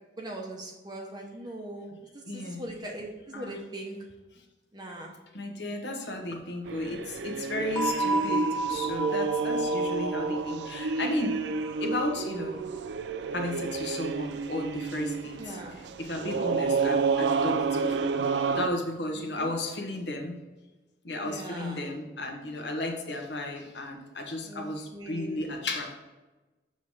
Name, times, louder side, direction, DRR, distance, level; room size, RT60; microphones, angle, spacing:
voice 1, 0.2-4.0 4.7-5.1 15.4-15.8 19.3-19.5 21.2-21.8 24.4-25.4, right 1 dB, 20° right, 0 dB, 0.7 m, -40 dB
voice 2, 2.3-2.7 3.3-3.6 4.3-4.4 5.3-11.4 11.8-12.6 13.3-20.4 21.0-26.0, left 1 dB, 65° left, 2 dB, 1.1 m, -34 dB
sound 1, 6.7-18.7, right 4 dB, 65° right, 0.4 m, -30 dB
sound 2, 7.8-12.4, right 2 dB, 20° left, 0.7 m, -33 dB
6.9 x 3.2 x 5.5 m, 1.1 s
head